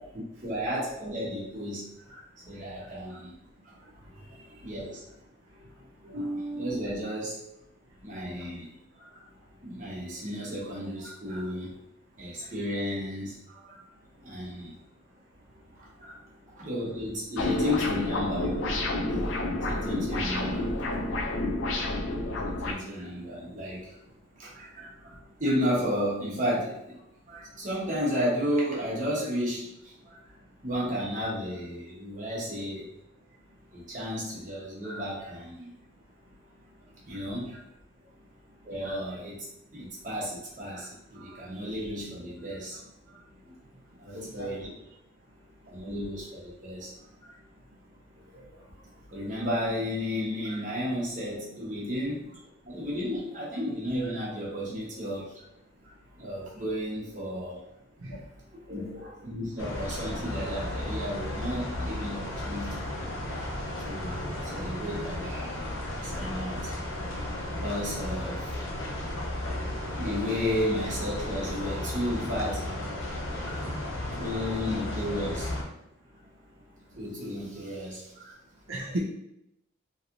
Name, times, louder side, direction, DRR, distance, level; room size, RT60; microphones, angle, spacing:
voice 1, 0.4-3.3 3.6-3.9 4.6-5.0 6.0-7.4 8.0-8.7 9.0-9.2 9.6-11.8 12.2-13.8 14.2-14.7 15.8-16.1 16.6-18.6 19.0-19.4 19.7-20.7 22.2-23.9 24.4-27.0 27.3-30.2 30.6-32.9 33.7-35.7 37.0-37.6 38.6-39.5 39.7-43.2 43.4-43.6 43.9-44.7 45.7-46.9 47.2-47.3 49.1-52.4 52.6-55.4 56.2-57.6 58.7-58.9 59.2-63.0 63.4-65.7 66.0-66.7 67.6-68.5 70.0-72.7 73.4-73.7 74.2-75.5 76.9-78.4, equal, 40° right, -5 dB, 1.0 m, -33 dB
sound 1, 17.4-22.7, left 2 dB, 75° left, 0.5 m, -29 dB
voice 2, 44.1-44.5 57.0-57.1 58.0-58.2 58.7-59.1 78.7-79.0, right 1 dB, 85° right, -4 dB, 0.7 m, -36 dB
sound 2, 59.6-75.6, left 1 dB, 90° left, 0.8 m, -34 dB
3.1 x 2.8 x 2.5 m, 0.81 s
head